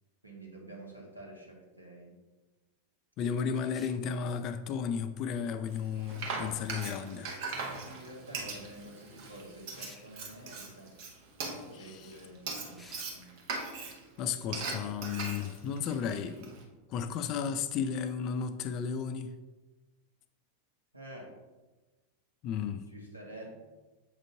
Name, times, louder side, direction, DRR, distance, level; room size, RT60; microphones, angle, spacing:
voice 1, 0.2-2.1 7.5-10.9 11.6-13.4 20.9-21.3 22.9-23.5, right 1 dB, 85° right, 1.4 m, -49 dB
voice 2, 3.2-7.3 11.7-12.1 14.2-16.5 16.9-19.3 22.4-22.8, left 7 dB, 40° left, 0.4 m, -34 dB
sound 1, 3.7-4.0 6.7-7.0 9.8-10.1 12.8-13.1, left 2 dB, 10° left, 0.7 m, -53 dB
Frying (food), 5.7-16.6, right 4 dB, 45° right, 1.0 m, -40 dB
7.1 x 5.1 x 2.6 m
figure-of-eight pair, 90°, 0 cm